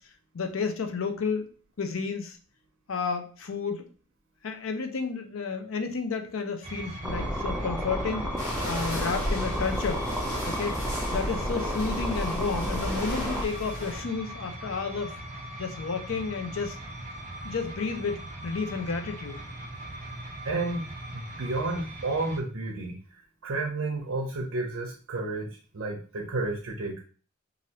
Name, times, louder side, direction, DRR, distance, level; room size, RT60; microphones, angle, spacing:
voice 1, 0.3-1.5 1.8-2.4 2.9-3.9 4.4-8.3 8.6-10.1 10.5-15.1 15.6-16.8 17.4-19.4, left 5 dB, 70° left, 6 dB, 0.5 m, -31 dB
sound 1, 6.6-22.4, right 1 dB, 35° right, 0.7 m, -40 dB
sound 2, 7.0-13.5, equal, 5° right, 0.4 m, -31 dB
sound 3, 8.4-14.0, left 1 dB, 90° left, 1.6 m, -37 dB
voice 2, 20.4-20.9 21.1-27.1, right 2 dB, 70° right, -1 dB, 0.7 m, -31 dB
3.1 x 2.5 x 2.9 m, 0.40 s
head